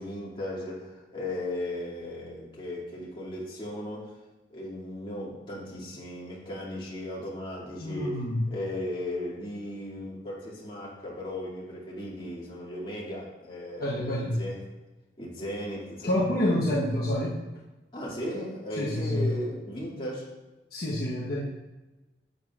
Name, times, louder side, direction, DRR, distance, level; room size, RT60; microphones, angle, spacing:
voice 1, 0.0-4.2 4.5-8.2 8.5-14.6 15.2-16.7 17.9-20.3, left 1 dB, 30° left, -6 dB, 2.3 m, -36 dB
voice 2, 7.8-8.4 13.8-14.4 16.0-17.4 18.8-19.3 20.7-21.4, left 1 dB, 55° left, -5 dB, 1.1 m, -27 dB
10.0 x 7.9 x 2.4 m, 1.1 s
head